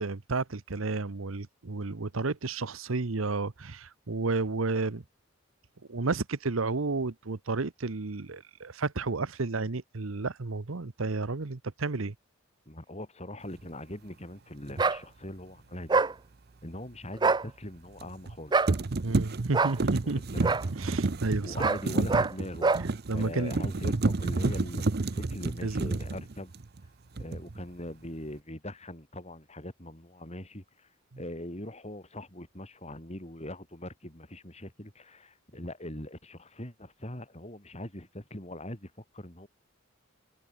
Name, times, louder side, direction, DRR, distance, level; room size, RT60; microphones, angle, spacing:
voice 1, 0.0-5.0 5.9-12.1 19.0-20.4 20.8-21.7 22.8-23.6 25.6-26.0, right 3 dB, 80° right, 1.0 m, -32 dB
voice 2, 12.7-16.0 16.6-18.6 20.0-20.5 21.4-22.7 23.1-26.5 27.2-30.9 31.2-39.5, left 1 dB, 30° left, 7.7 m, -41 dB
sound 1, 14.7-14.9 18.0-18.4 18.7-26.9 27.2-27.6, right 3 dB, 50° right, 0.7 m, -30 dB
sound 2, 14.8-15.0 15.9-16.1 17.1-17.4 18.5-18.7 19.5-19.8 20.4-20.6 21.6-21.8 22.1-22.3 22.6-22.8, right 4 dB, 20° right, 0.5 m, -24 dB
head